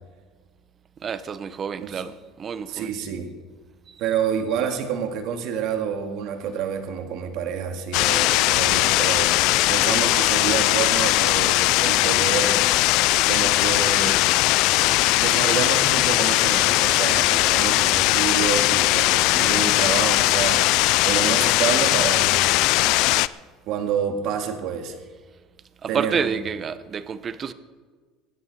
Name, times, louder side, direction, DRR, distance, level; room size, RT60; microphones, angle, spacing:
voice 1, 1.0-2.9 3.9-4.0 25.8-27.5, right 6 dB, 35° right, 0.9 m, -29 dB
voice 2, 2.7-3.3 4.0-9.4 9.7-12.6 13.3-14.2 15.2-20.6 21.0-22.4 23.7-25.0 25.9-26.3, right 7 dB, 65° right, 2.2 m, -28 dB
sound 1, 7.9-23.3, left 19 dB, 70° left, 0.4 m, -19 dB
19.5 x 13.5 x 4.3 m
supercardioid pair, 110°, 0 cm